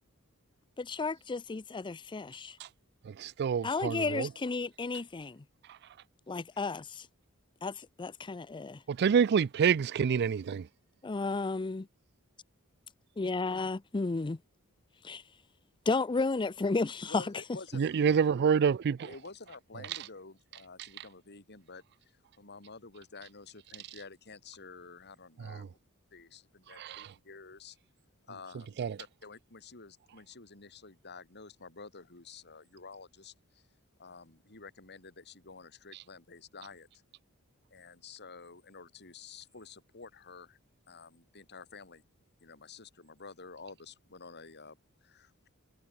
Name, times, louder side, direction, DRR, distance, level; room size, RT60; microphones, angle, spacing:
voice 1, 0.8-2.6 3.6-5.4 6.3-7.1 7.6-8.8 11.0-11.9 13.2-14.4 15.0-15.2 15.9-17.3, left 3 dB, 20° left, 0.5 m, -33 dB
voice 2, 3.0-4.3 8.9-10.7 17.7-19.1 25.4-25.7 26.8-27.1 28.8-29.0, right 7 dB, 50° right, 0.4 m, -27 dB
voice 3, 17.0-17.8 19.0-21.8 22.4-25.8 26.1-27.8 28.3-33.6 34.0-36.9 37.7-40.6 40.9-42.0 42.4-45.5, left 4 dB, 50° left, 4.6 m, -50 dB
head